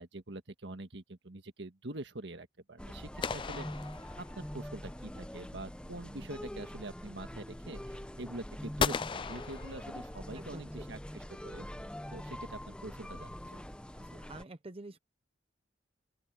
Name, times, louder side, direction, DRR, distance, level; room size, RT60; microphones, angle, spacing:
voice 1, 0.0-3.6 4.1-11.7 12.1-13.6, right 2 dB, 70° right, 1.7 m, -45 dB
sound 1, 2.8-14.4, equal, 5° left, 0.8 m, -44 dB
sound 2, 3.2-4.7 8.8-10.4, left 5 dB, 25° left, 0.4 m, -36 dB
voice 2, 10.3-10.9 14.0-15.0, right 2 dB, 30° right, 0.9 m, -47 dB
open air
head